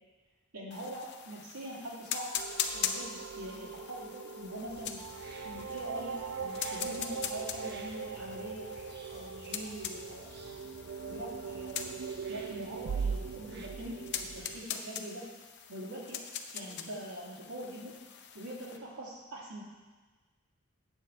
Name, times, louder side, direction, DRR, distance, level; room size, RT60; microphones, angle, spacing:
voice 1, 0.5-2.3 2.7-5.0 5.4-8.7 9.1-10.3 11.1-11.8 12.3-15.3 15.7-16.2 16.5-17.9 18.3-19.6, right 1 dB, 85° right, -4 dB, 2.3 m, -43 dB
sound 1, 0.7-18.8, left 7 dB, 50° left, 0.6 m, -42 dB
sound 2, 2.4-14.7, right 5 dB, 70° right, 0.4 m, -40 dB
sound 3, 4.7-13.7, right 3 dB, 50° right, 0.8 m, -53 dB
8.8 x 4.9 x 6.9 m, 1.3 s
head